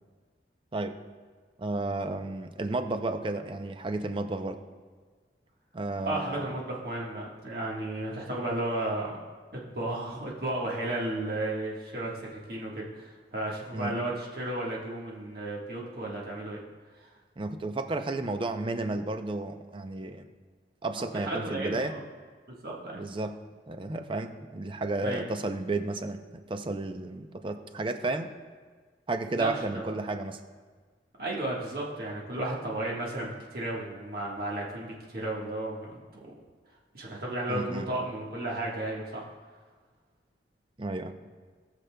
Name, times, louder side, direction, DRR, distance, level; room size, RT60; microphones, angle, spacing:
voice 1, 1.6-4.6 5.7-6.5 13.7-13.9 17.4-20.3 20.8-21.9 22.9-23.3 23.7-26.2 26.5-28.3 29.1-30.4 37.5-37.9 40.8-41.1, right 2 dB, 30° right, 8 dB, 0.5 m, -32 dB
voice 2, 6.0-9.2 9.5-16.6 17.0-17.1 21.0-22.0 22.5-23.0 25.0-25.2 29.3-30.0 31.2-36.3 36.9-39.2, right 1 dB, 55° right, -4 dB, 1.4 m, -34 dB
18.0 x 6.6 x 2.2 m, 1.5 s
head